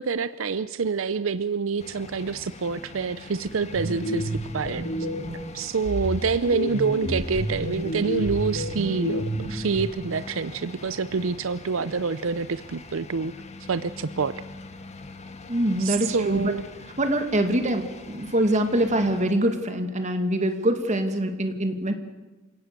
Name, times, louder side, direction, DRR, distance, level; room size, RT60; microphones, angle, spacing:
voice 1, 0.0-4.8 5.5-13.3 13.7-14.3 15.8-16.6, right 5 dB, 80° right, 14 dB, 0.6 m, -27 dB
sound 1, 1.8-19.3, left 2 dB, 35° left, 1.6 m, -43 dB
sound 2, 3.4-5.5 5.8-9.8, equal, 75° left, 4.8 m, -30 dB
voice 2, 15.5-16.5 17.0-21.9, right 1 dB, 35° right, 7 dB, 2.3 m, -24 dB
28.5 x 18.0 x 6.8 m, 1.2 s
head